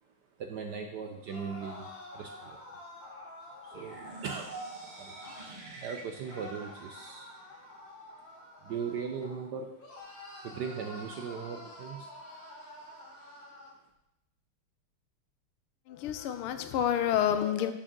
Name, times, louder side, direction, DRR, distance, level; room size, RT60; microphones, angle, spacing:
voice 1, 0.4-2.7 3.6-4.6 5.0-5.1 5.5-7.3 8.6-9.7 10.4-12.1, right 6 dB, 70° right, 4 dB, 1.0 m, -39 dB
sound 1, 1.2-5.5 6.3-9.4 9.8-13.7, left 1 dB, 60° left, 3.0 m, -48 dB
sound 2, 3.7-7.7, right 3 dB, 30° right, 0.8 m, -46 dB
voice 2, 15.9-17.7, left 10 dB, 85° left, 9 dB, 1.5 m, -28 dB
6.3 x 6.2 x 6.0 m, 0.85 s
omnidirectional pair, 2.4 m